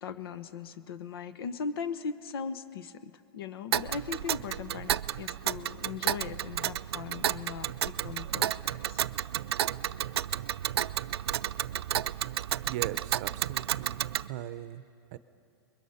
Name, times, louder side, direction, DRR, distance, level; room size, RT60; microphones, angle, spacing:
voice 1, 0.0-9.0, left 6 dB, 70° left, 12 dB, 1.1 m, -39 dB
Tick, 3.7-14.3, right 11 dB, 80° right, 0.4 m, -32 dB
voice 2, 12.6-14.0 14.3-14.8 15.1-15.2, right 13 dB, 45° right, 14 dB, 0.7 m, -38 dB
28.5 x 22.0 x 5.7 m, 2.5 s
hypercardioid pair, 145°, 13 cm